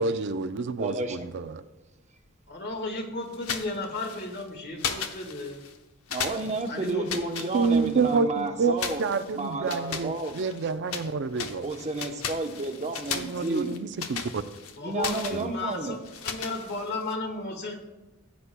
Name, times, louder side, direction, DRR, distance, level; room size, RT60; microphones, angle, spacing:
voice 1, 0.0-1.6 7.5-11.7 13.1-14.4 15.3-15.5, right 4 dB, 55° right, 10 dB, 0.5 m, -28 dB
voice 2, 0.8-1.3 6.1-9.0 9.3-10.3 11.6-13.7 14.8-16.0, right 2 dB, 30° right, 5 dB, 0.8 m, -31 dB
voice 3, 2.5-5.6 6.7-7.2 14.8-16.0 16.2-17.7, left 2 dB, 50° left, 2 dB, 1.7 m, -34 dB
sound 1, 3.3-4.4 4.8-5.8 6.1-8.2 8.8-11.1 11.4-17.1, left 7 dB, 80° left, 0.8 m, -36 dB
15.5 x 8.3 x 2.2 m, 1.1 s
head